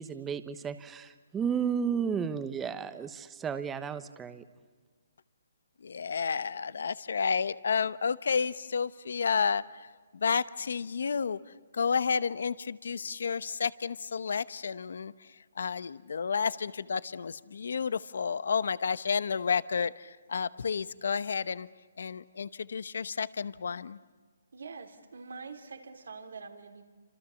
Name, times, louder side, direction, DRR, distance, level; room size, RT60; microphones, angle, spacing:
voice 1, 0.0-4.4, right 7 dB, 10° right, 11 dB, 1.1 m, -33 dB
voice 2, 5.8-9.6 10.2-11.4 11.7-15.1 15.6-21.7 22.0-24.0, left 6 dB, 75° left, 17 dB, 0.9 m, -31 dB
voice 3, 24.5-26.8, right 4 dB, 80° right, 7 dB, 3.2 m, -45 dB
28.5 x 26.5 x 7.2 m, 1.4 s
hypercardioid pair, 155°, 0 cm